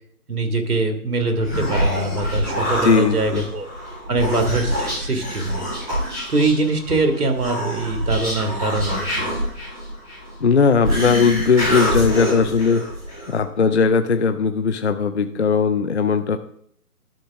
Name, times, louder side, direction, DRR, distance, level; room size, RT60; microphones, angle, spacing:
voice 1, 0.3-3.7 4.1-5.6 6.3-9.3, right 3 dB, 75° right, 5 dB, 2.1 m, -23 dB
Human voice, 1.2-13.4, equal, 10° right, 4.5 m, -26 dB
voice 2, 2.8-3.4 10.4-12.8 13.3-16.4, left 5 dB, 50° left, 9 dB, 0.5 m, -18 dB
11.5 x 6.9 x 3.5 m, 0.65 s
hypercardioid pair, 165°, 46 cm